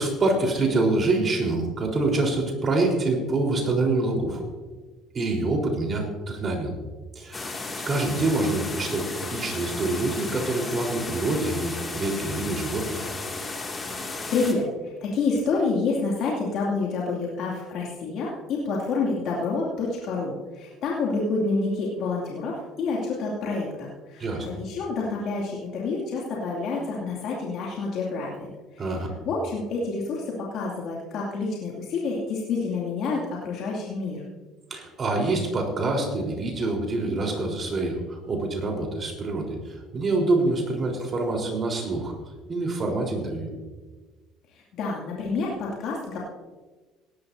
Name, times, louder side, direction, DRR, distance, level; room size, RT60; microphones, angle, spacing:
voice 1, 0.0-4.4 5.1-6.7 7.1-7.5 7.9-13.0 24.2-24.5 28.8-29.1 34.7-42.1 42.5-43.5, right 2 dB, 40° right, 0 dB, 4.1 m, -26 dB
sound 1, 7.3-14.5, left 3 dB, 25° left, 2.4 m, -34 dB
voice 2, 14.0-28.9 29.2-34.2 44.5-46.2, left 3 dB, 65° left, -4 dB, 2.6 m, -28 dB
18.0 x 12.0 x 2.7 m, 1.3 s
supercardioid pair, 80°, 0 cm